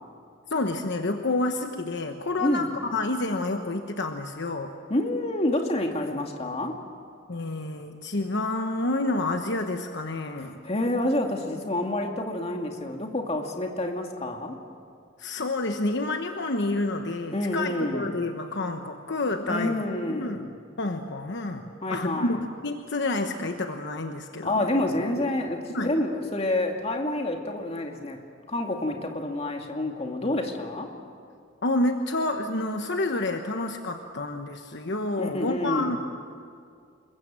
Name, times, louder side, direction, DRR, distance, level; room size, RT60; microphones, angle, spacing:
voice 1, 0.5-4.7 7.3-10.6 15.2-19.8 20.1-20.5 20.8-24.7 25.7-25.9 31.6-36.0, left 2 dB, 60° left, 5 dB, 1.2 m, -29 dB
voice 2, 2.4-2.8 4.9-6.7 10.4-14.6 17.3-18.1 19.5-20.4 21.8-22.4 24.4-28.2 28.5-30.9 35.2-36.0, left 1 dB, 30° left, 2 dB, 2.4 m, -28 dB
28.0 x 22.0 x 7.7 m, 2.3 s
head